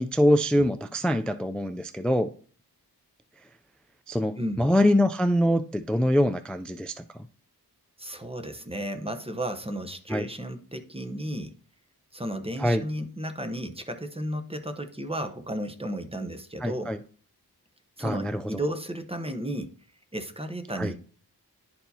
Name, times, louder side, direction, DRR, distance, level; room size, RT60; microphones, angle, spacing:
voice 1, 0.0-2.3 4.1-7.0 10.1-10.3 12.6-12.8 16.6-17.0 18.0-18.4 20.8-20.9, equal, 5° left, 10 dB, 0.3 m, -24 dB
voice 2, 8.0-11.5 12.1-17.0 18.0-19.7 20.1-21.0, right 1 dB, 15° right, 7 dB, 0.8 m, -33 dB
11.5 x 4.4 x 2.7 m, 0.43 s
wide cardioid pair, 40°, 40 cm